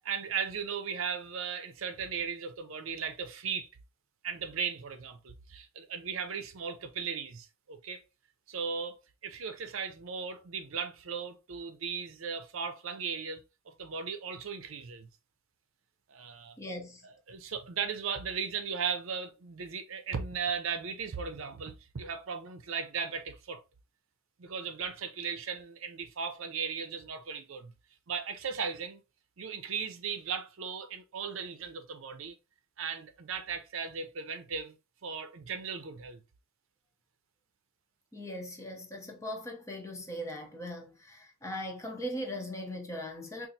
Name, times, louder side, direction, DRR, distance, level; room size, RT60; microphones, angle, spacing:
voice 1, 0.1-3.7 4.2-8.0 8.5-9.0 9.2-15.1 16.1-16.6 17.0-23.6 24.4-27.7 28.1-29.0 29.4-32.3 32.8-34.7 35.0-36.2, right 6 dB, 70° right, 0.5 m, -37 dB
voice 2, 16.6-17.1 38.1-43.5, equal, 15° left, 0.6 m, -39 dB
3.9 x 2.5 x 2.7 m
head